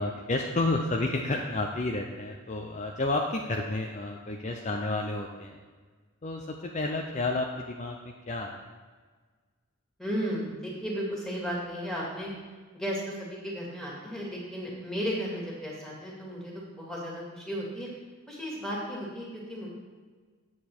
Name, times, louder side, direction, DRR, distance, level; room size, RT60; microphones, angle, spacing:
voice 1, 0.0-5.6 6.2-8.5, left 2 dB, 35° left, 1 dB, 0.5 m, -31 dB
voice 2, 10.0-12.3 12.7-17.9 18.3-19.7, equal, ahead, -4 dB, 2.2 m, -34 dB
8.7 x 7.3 x 4.5 m, 1.5 s
head